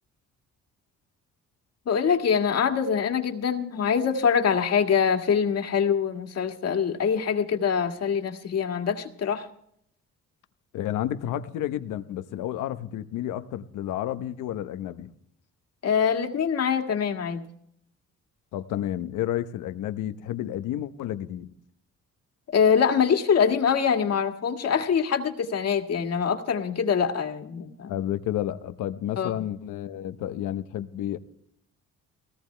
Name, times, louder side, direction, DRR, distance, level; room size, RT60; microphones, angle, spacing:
voice 1, 1.9-9.5 15.8-17.4 22.5-27.9 29.2-29.3, left 7 dB, 55° left, 4 dB, 1.9 m, -24 dB
voice 2, 10.7-15.1 18.5-21.5 27.9-31.2, left 12 dB, 90° left, 11 dB, 1.0 m, -31 dB
19.5 x 18.0 x 3.3 m, 0.68 s
cardioid pair, 90°, 30 cm